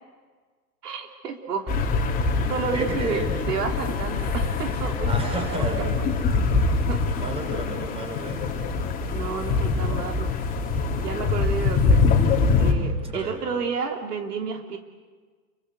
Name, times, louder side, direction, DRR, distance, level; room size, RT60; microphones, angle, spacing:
voice 1, 0.8-1.8 2.5-3.2 3.5-5.2 5.8-5.9 6.9-7.1 9.1-10.3 11.0-12.1 12.6-14.8, right 5 dB, 70° right, 3 dB, 3.3 m, -30 dB
sound 1, 1.7-12.7, left 4 dB, 15° left, 3.4 m, -24 dB
voice 2, 2.7-3.3 5.1-6.3 7.1-8.4 13.0-13.4, right 1 dB, 10° right, 3 dB, 6.1 m, -32 dB
29.5 x 24.0 x 8.2 m, 1.5 s
hypercardioid pair, 145°, 49 cm